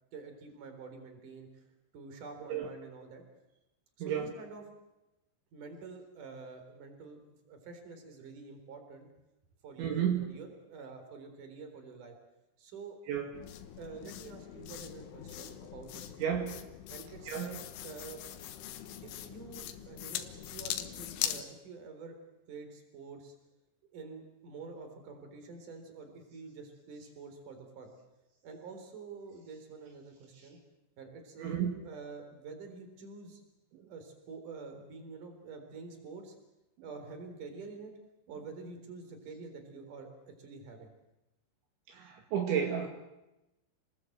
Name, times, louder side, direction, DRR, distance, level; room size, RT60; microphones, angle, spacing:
voice 1, 0.1-1.6 1.9-3.2 4.0-4.7 5.5-7.2 7.5-9.1 9.6-12.2 12.6-13.0 13.8-16.4 16.9-18.2 19.0-22.2 22.5-23.4 23.9-27.9 28.4-30.6 31.0-33.4 33.9-36.4 36.8-37.9 38.3-40.9, right 4 dB, 45° right, 6 dB, 5.2 m, -47 dB
voice 2, 9.8-10.2 13.1-13.3 16.2-16.5 17.3-17.5 31.4-31.7 41.9-42.9, right 8 dB, 70° right, 2 dB, 4.3 m, -31 dB
sound 1, 13.3-21.4, left 11 dB, 80° left, 3.8 m, -41 dB
29.0 x 20.0 x 8.0 m, 0.96 s
omnidirectional pair, 5.6 m